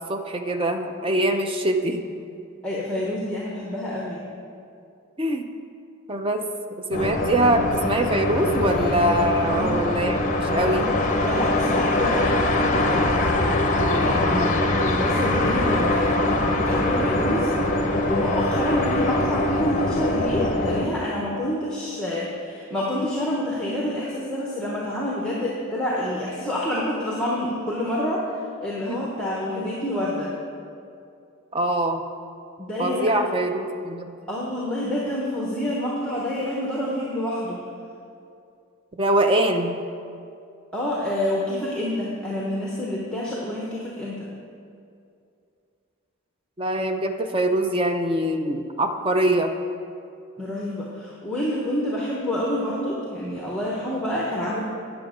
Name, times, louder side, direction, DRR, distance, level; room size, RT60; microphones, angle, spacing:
voice 1, 0.1-2.0 5.2-5.5 6.1-6.4 6.8-10.9 14.3-14.7 28.9-29.0 31.5-32.0 32.8-34.1 39.0-39.8 46.6-49.5, right 1 dB, 25° right, 5 dB, 0.5 m, -23 dB
voice 2, 2.6-4.2 9.4-9.8 10.6-10.9 11.2-13.1 13.9-16.2 16.5-17.5 18.1-28.3 28.6-30.3 32.6-33.1 34.3-37.6 40.7-44.3 50.4-54.6, left 1 dB, 5° left, -5 dB, 0.9 m, -28 dB
sound 1, 6.9-20.9, left 2 dB, 35° left, 0.7 m, -23 dB
9.6 x 6.9 x 5.0 m, 2.5 s
head